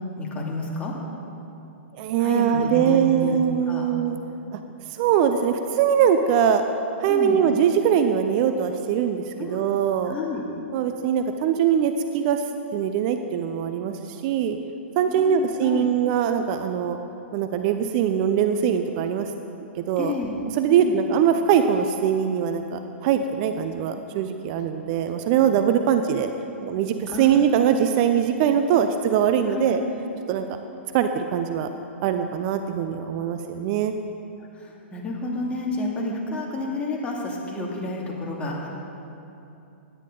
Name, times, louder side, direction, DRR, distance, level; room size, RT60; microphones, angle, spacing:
voice 1, 0.2-0.9 2.2-3.4 3.7-3.9 7.1-7.4 9.4-9.6 10.1-10.4 15.1-15.9 20.0-20.3 20.7-21.0 27.1-27.7 29.5-29.8 34.6-38.7, left 2 dB, 20° left, -3 dB, 2.4 m, -30 dB
voice 2, 2.0-4.2 4.5-4.6 4.9-6.6 7.0-10.2 10.7-12.4 12.7-14.6 15.0-17.0 17.3-19.3 19.9-20.1 20.6-26.3 26.6-29.8 30.3-30.6 30.9-31.7 32.0-33.9, right 8 dB, 40° right, 7 dB, 0.6 m, -22 dB
17.0 x 10.5 x 3.9 m, 2.9 s
figure-of-eight pair, 115°, 7 cm